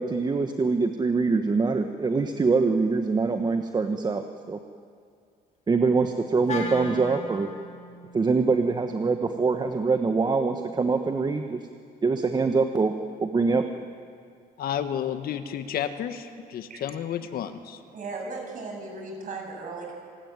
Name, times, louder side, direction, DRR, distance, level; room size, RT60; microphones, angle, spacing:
voice 1, 0.0-4.2 4.5-4.6 5.7-7.5 8.1-11.6 12.0-12.9 13.2-13.6, right 4 dB, 25° right, 6 dB, 1.3 m, -24 dB
Wind instrument woodwind instrument, 6.5-10.7, left 3 dB, 40° left, 4.0 m, -40 dB
voice 2, 14.6-17.8, left 9 dB, 60° left, 8 dB, 1.7 m, -31 dB
voice 3, 17.9-19.9, right 3 dB, 50° right, 1 dB, 7.8 m, -36 dB
28.0 x 19.5 x 9.6 m, 2.3 s
cardioid pair, 110°, 17 cm